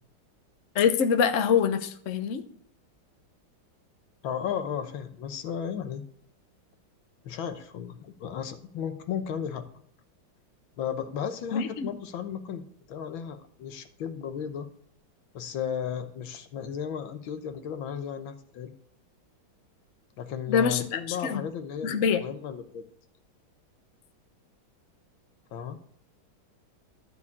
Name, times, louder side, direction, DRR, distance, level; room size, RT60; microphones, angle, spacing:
voice 1, 0.7-2.4 11.5-11.9 20.5-21.4 21.8-22.2, left 7 dB, 55° left, 7 dB, 0.9 m, -25 dB
voice 2, 4.2-6.0 7.2-9.6 10.8-12.6 12.9-14.7 15.3-18.7 20.2-22.8 25.5-25.8, left 8 dB, 70° left, 8 dB, 1.7 m, -34 dB
12.0 x 4.8 x 8.4 m, 0.63 s
omnidirectional pair, 2.3 m